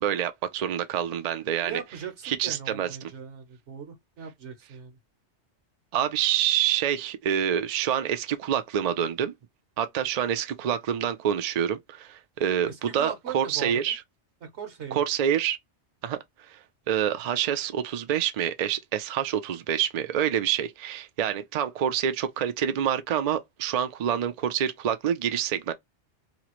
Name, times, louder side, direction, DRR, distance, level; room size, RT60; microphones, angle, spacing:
voice 1, 0.0-1.8 2.2-3.1 5.9-9.3 9.8-14.0 14.9-15.6 16.0-16.2 16.5-16.6 16.9-25.7, right 9 dB, 60° right, 0.4 m, -27 dB
voice 2, 1.6-2.1 2.4-4.9 12.7-13.8 14.4-15.0, right 7 dB, 80° right, 1.3 m, -39 dB
2.9 x 2.4 x 2.9 m
omnidirectional pair, 1.2 m